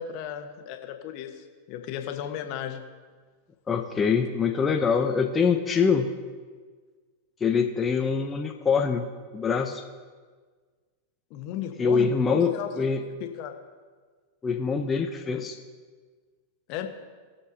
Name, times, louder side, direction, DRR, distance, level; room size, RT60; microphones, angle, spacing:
voice 1, 0.0-2.8 11.3-12.7 13.0-13.5 16.7-16.9, left 10 dB, 50° left, 6 dB, 1.3 m, -35 dB
voice 2, 3.7-6.1 7.4-9.0 9.3-9.8 11.8-13.0 14.4-15.6, left 5 dB, 20° left, 3 dB, 0.8 m, -24 dB
20.0 x 7.0 x 2.9 m, 1.5 s
figure-of-eight pair, 90°, 0 cm